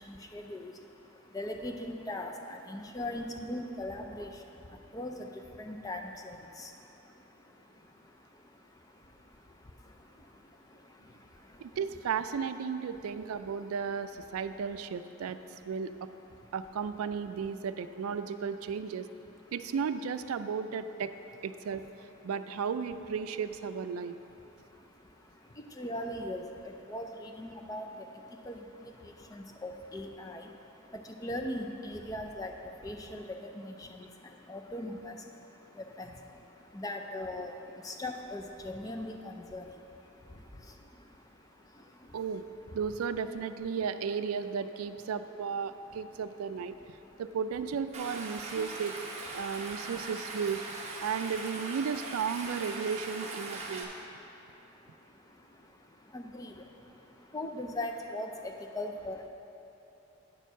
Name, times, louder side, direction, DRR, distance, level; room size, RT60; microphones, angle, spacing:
voice 1, 0.0-11.8 13.1-13.2 13.5-13.7 14.3-14.4 15.3-15.7 16.3-16.5 19.2-19.5 24.0-42.2 46.7-47.2 49.4-49.9 53.6-59.3, left 1 dB, 15° left, 3 dB, 0.4 m, -42 dB
voice 2, 11.6-15.4 15.6-16.1 16.5-19.1 19.5-21.1 21.4-21.8 22.2-24.2 42.1-42.4 42.7-49.0 49.3-50.6 51.0-53.9, right 6 dB, 90° right, 11 dB, 0.3 m, -34 dB
Stream, 47.9-53.8, right 3 dB, 30° right, 0.8 m, -41 dB
9.0 x 4.5 x 6.1 m, 3.0 s
head